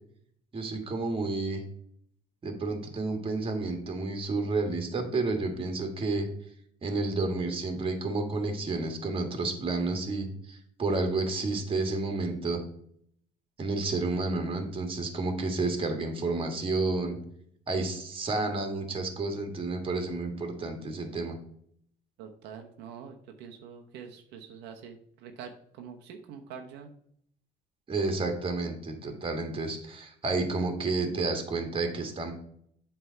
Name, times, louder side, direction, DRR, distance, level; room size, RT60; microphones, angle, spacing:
voice 1, 0.5-1.6 2.4-6.3 6.8-12.6 13.6-17.2 17.7-21.4 27.9-32.3, right 3 dB, 30° right, 5 dB, 1.6 m, -30 dB
voice 2, 22.2-26.9, right 7 dB, 90° right, 3 dB, 0.9 m, -45 dB
7.9 x 3.4 x 5.5 m, 0.66 s
cardioid pair, 110°, 17 cm